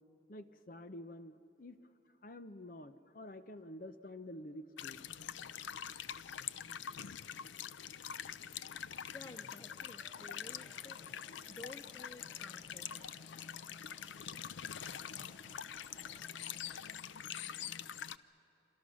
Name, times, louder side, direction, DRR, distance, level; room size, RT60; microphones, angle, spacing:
voice 1, 0.3-1.8 2.2-5.0, left 1 dB, 45° left, 11 dB, 0.8 m, -49 dB
sound 1, 4.8-18.2, left 9 dB, 90° left, 0.5 m, -45 dB
sound 2, 8.1-17.0, right 1 dB, 5° right, 3.3 m, -65 dB
voice 2, 9.1-13.1, left 2 dB, 15° left, 8 dB, 0.5 m, -54 dB
27.0 x 26.0 x 6.4 m, 2.8 s
head